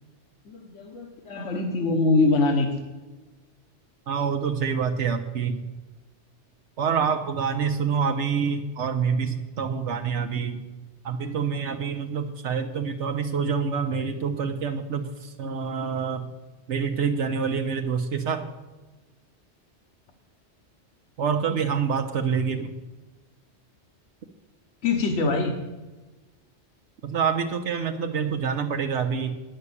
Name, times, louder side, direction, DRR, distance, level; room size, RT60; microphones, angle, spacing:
voice 1, 0.4-2.7 24.8-25.6, left 3 dB, 85° left, 3 dB, 1.4 m, -23 dB
voice 2, 4.1-5.6 6.8-10.6 11.0-16.3 16.7-18.5 21.2-22.7 27.0-29.4, right 6 dB, 80° right, 5 dB, 1.1 m, -26 dB
9.7 x 6.5 x 8.2 m, 1.2 s
omnidirectional pair, 1.2 m